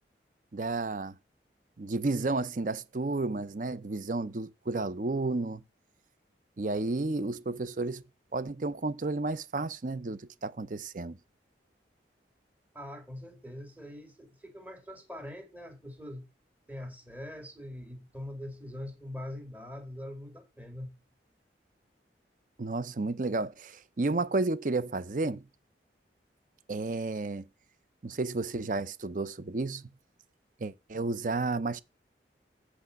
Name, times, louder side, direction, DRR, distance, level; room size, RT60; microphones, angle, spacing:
voice 1, 0.5-1.1 1.8-5.6 6.6-8.0 8.3-11.2 22.6-25.4 26.7-27.5 28.0-29.8 30.6-31.8, right 3 dB, 45° right, 0.6 m, -32 dB
voice 2, 12.7-16.3 16.7-20.9, left 1 dB, 10° right, 2.3 m, -43 dB
8.3 x 4.9 x 6.3 m
head